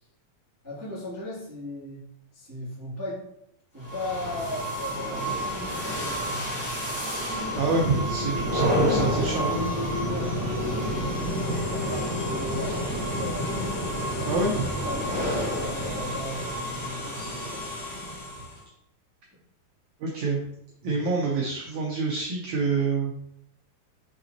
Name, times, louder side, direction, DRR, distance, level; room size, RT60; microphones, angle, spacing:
voice 1, 0.6-2.0 2.3-3.3 3.7-6.9 10.1-13.5 14.0-14.4 14.8-17.8 20.8-21.1, left 1 dB, 5° right, -9 dB, 1.5 m, -37 dB
sound 1, 3.8-18.6, equal, 30° left, 2.3 m, -29 dB
voice 2, 7.6-9.6 14.3-14.6 20.0-20.4 20.8-23.1, right 3 dB, 75° right, -1 dB, 1.7 m, -26 dB
6.2 x 5.3 x 2.9 m, 0.78 s
omnidirectional pair, 4.2 m